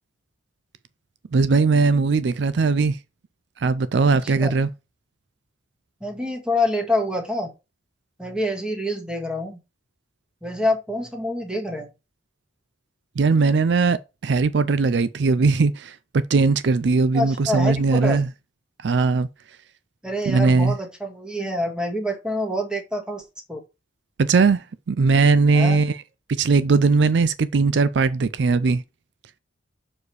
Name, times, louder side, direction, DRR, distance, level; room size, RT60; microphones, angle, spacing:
voice 1, 1.3-3.0 3.6-4.7 13.2-18.3 18.8-19.3 20.3-20.8 24.2-26.0 26.3-28.8, right 4 dB, 65° right, 0.4 m, -19 dB
voice 2, 4.2-4.5 6.0-7.5 8.2-9.6 10.4-11.9 17.1-18.2 20.0-23.2 23.5-23.6 25.5-25.8, left 1 dB, 5° right, 1.7 m, -26 dB
6.4 x 4.8 x 4.7 m
head